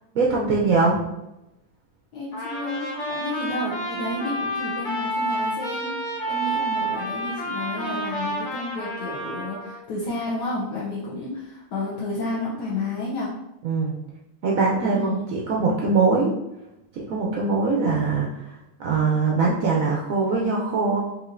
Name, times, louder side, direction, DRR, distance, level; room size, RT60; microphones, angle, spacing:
voice 1, 0.1-1.0 13.6-13.9 14.4-16.3 16.9-18.5 18.8-21.0, right 4 dB, 80° right, -3 dB, 0.7 m, -22 dB
voice 2, 2.1-6.0 6.3-13.3 14.9-15.3, left 2 dB, 70° left, -5 dB, 1.2 m, -31 dB
Trumpet, 2.3-9.8, right 1 dB, 45° left, 1.9 m, -29 dB
4.9 x 2.7 x 2.5 m, 0.91 s
omnidirectional pair, 2.0 m